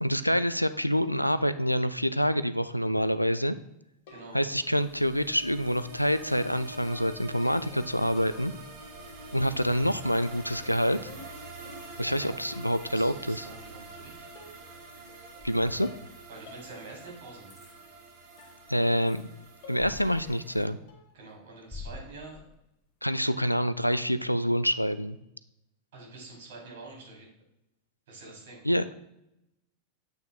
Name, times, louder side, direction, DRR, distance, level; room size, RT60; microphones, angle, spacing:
voice 1, 0.0-3.6 4.3-8.5 9.3-11.1 12.0-13.5 15.4-15.9 18.7-19.2 19.7-20.8 23.0-25.2 28.6-28.9, equal, 90° left, 13 dB, 0.3 m, -26 dB
sound 1, 4.1-4.6 5.7-7.9 8.2-8.8 9.7-10.1 10.3-12.1 12.5-12.9 13.8-13.9 14.3-14.8 15.1-15.5 15.8-16.1 16.5-16.7 17.1-17.2 18.4-18.6 19.0-19.3 19.6-20.0 20.2-20.6 20.9-21.2, left 4 dB, 50° left, 1.4 m, -51 dB
sound 2, 4.4-20.7, right 2 dB, 40° right, 1.8 m, -46 dB
voice 2, 12.9-14.3 16.3-17.6 21.1-22.4 23.2-23.4 25.9-27.3 28.1-28.6, right 3 dB, 55° right, -2 dB, 3.0 m, -46 dB
sound 3, 14.4-16.2 16.9-17.0 17.5-17.8 18.2-19.3 19.7-20.9 21.3-22.8 23.3-23.4, left 3 dB, 15° left, 1.2 m, -48 dB
9.3 x 8.0 x 2.2 m, 0.84 s
figure-of-eight pair, 90°, 0 cm